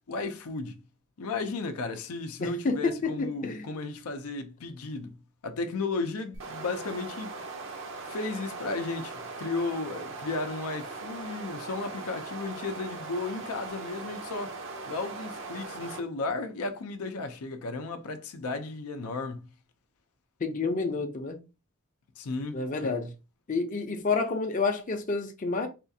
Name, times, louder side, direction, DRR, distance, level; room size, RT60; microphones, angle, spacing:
voice 1, 0.1-0.8 1.2-5.2 5.4-7.4 8.1-14.5 14.9-19.5 22.2-22.9, left 3 dB, 80° left, 0.5 m, -34 dB
voice 2, 2.4-3.6 20.4-21.4 22.5-23.1 23.5-25.7, left 4 dB, 35° left, 0.5 m, -29 dB
sound 1, 6.3-16.0, right 3 dB, 60° right, 0.6 m, -40 dB
4.2 x 2.4 x 2.7 m
head